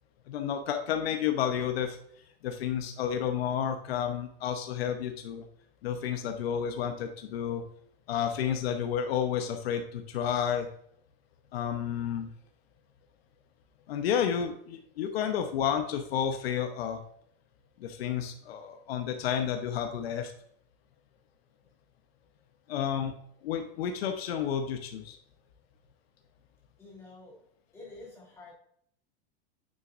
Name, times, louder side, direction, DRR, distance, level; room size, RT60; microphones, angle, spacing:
voice 1, 0.3-2.0 2.4-5.4 5.8-7.6 8.1-10.7 11.5-12.3 13.9-17.0 17.8-20.3 22.7-23.1 23.4-25.2, left 8 dB, 85° left, 6 dB, 1.0 m, -31 dB
voice 2, 26.8-27.4 27.7-28.5, left 2 dB, 10° left, -5 dB, 3.3 m, -49 dB
9.1 x 6.3 x 2.6 m, 0.67 s
supercardioid pair, 160°, 30 cm